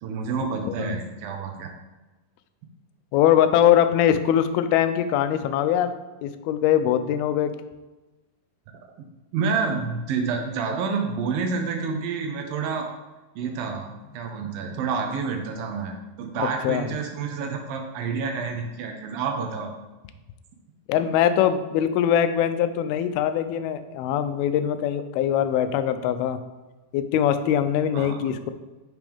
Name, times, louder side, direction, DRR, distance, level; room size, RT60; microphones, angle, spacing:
voice 1, 0.0-1.7 9.3-12.9 13.4-19.7 27.9-28.3, right 5 dB, 75° right, 3 dB, 2.4 m, -29 dB
voice 2, 0.7-1.0 3.1-6.0 6.2-7.6 16.4-16.9 20.9-26.4 26.9-28.5, left 10 dB, 85° left, 10 dB, 2.4 m, -22 dB
9.5 x 6.0 x 3.5 m, 1.1 s
omnidirectional pair, 4.4 m